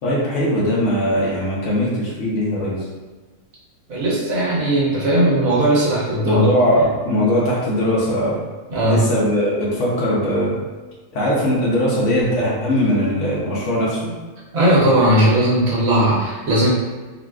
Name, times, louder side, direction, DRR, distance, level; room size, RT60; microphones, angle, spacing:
voice 1, 0.0-2.8 6.2-8.4 8.8-10.5 11.1-14.1, equal, 65° left, -5 dB, 1.2 m, -20 dB
voice 2, 3.9-6.4 6.8-6.9 8.7-9.0 14.5-16.7, right 1 dB, 85° right, -6 dB, 1.3 m, -17 dB
3.9 x 2.3 x 2.3 m, 1.3 s
omnidirectional pair, 1.4 m